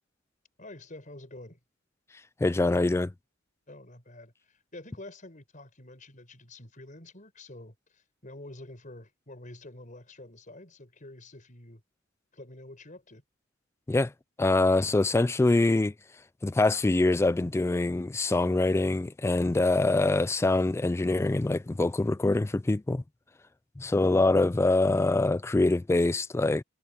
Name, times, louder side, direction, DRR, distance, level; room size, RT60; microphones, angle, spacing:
voice 1, 0.6-1.6 3.7-11.8 12.3-13.2, left 2 dB, 40° left, 5.8 m, -47 dB
voice 2, 2.4-3.1 13.9-14.1 14.4-15.9 16.4-23.0 23.8-26.6, left 2 dB, 15° left, 0.3 m, -24 dB
head